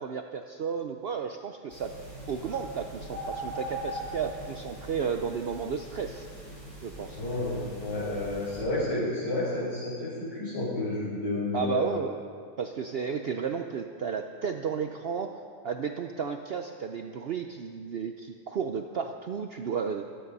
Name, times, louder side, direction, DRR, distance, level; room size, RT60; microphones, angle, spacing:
voice 1, 0.0-1.9 2.3-6.3 6.8-7.2 11.5-12.1 12.6-15.3 15.6-20.1, right 6 dB, 85° right, 6 dB, 0.5 m, -33 dB
sound 1, 1.7-8.6, right 1 dB, 40° right, 5.2 m, -41 dB
voice 2, 7.2-11.8, left 2 dB, 85° left, -10 dB, 5.2 m, -31 dB
16.0 x 12.5 x 5.4 m, 2.2 s
omnidirectional pair, 1.8 m